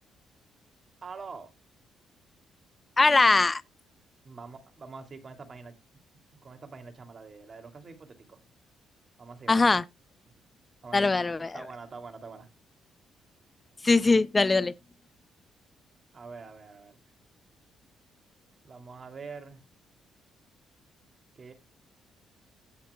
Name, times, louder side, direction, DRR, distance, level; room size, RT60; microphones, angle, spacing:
voice 1, 1.0-1.5 4.2-5.7 6.4-8.4 9.2-9.7 10.8-12.5 16.1-17.0 18.6-19.6 21.3-21.5, right 4 dB, 40° right, 2.8 m, -45 dB
voice 2, 3.0-3.6 9.5-9.8 10.9-11.5 13.8-14.7, left 3 dB, 25° left, 0.6 m, -21 dB
17.0 x 5.9 x 2.3 m
cardioid pair, 90°, 0 cm